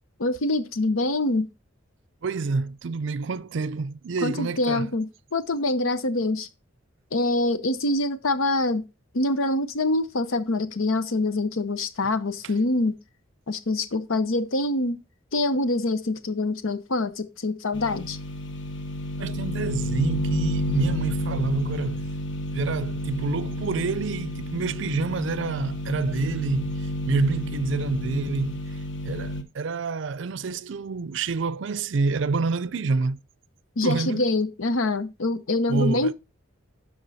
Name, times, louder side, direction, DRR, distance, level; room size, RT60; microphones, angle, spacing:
voice 1, 0.2-1.5 4.2-5.1 5.3-6.5 7.1-8.8 9.1-12.9 13.5-15.0 15.3-18.2 33.8-36.1, left 2 dB, 85° left, 0.9 m, -25 dB
voice 2, 2.2-4.9 12.4-12.5 19.2-22.1 22.5-28.6 29.0-33.2 33.8-34.3 35.7-36.1, right 4 dB, 65° right, 0.5 m, -28 dB
sound 1, 17.7-29.4, left 1 dB, 60° left, 1.1 m, -30 dB
12.0 x 4.7 x 4.1 m
head